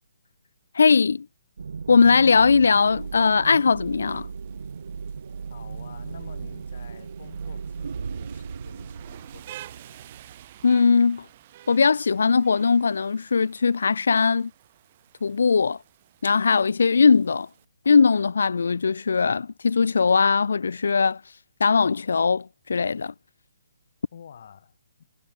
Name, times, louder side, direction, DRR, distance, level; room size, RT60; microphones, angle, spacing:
voice 1, 0.7-1.3 1.9-4.3 10.6-11.2 11.7-14.5 15.2-15.8 16.2-17.5 17.9-21.2 21.6-23.1, left 5 dB, 80° left, 0.6 m, -20 dB
sound 1, 1.6-10.9, right 5 dB, 70° right, 4.2 m, -36 dB
Rain, 2.5-17.6, right 13 dB, 35° right, 3.7 m, -51 dB
voice 2, 5.5-10.0 24.1-25.1, left 8 dB, 55° left, 7.3 m, -49 dB
hypercardioid pair, 160°, 0 cm